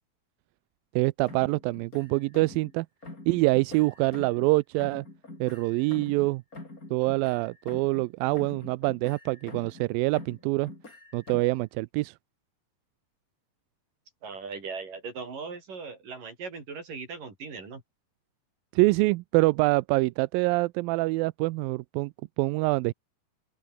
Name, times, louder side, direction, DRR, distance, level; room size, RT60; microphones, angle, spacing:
voice 1, 1.0-2.9 3.3-5.1 5.4-6.4 6.9-10.7 11.1-12.1 18.7-22.9, right 22 dB, 80° right, 2.2 m, -25 dB
sound 1, 1.2-2.7 3.0-4.5 4.8-8.1 8.3-9.9 10.1-11.6, left 2 dB, 20° left, 5.6 m, -45 dB
voice 2, 14.2-17.8, right 5 dB, 60° right, 7.3 m, -39 dB
open air
omnidirectional pair, 4.4 m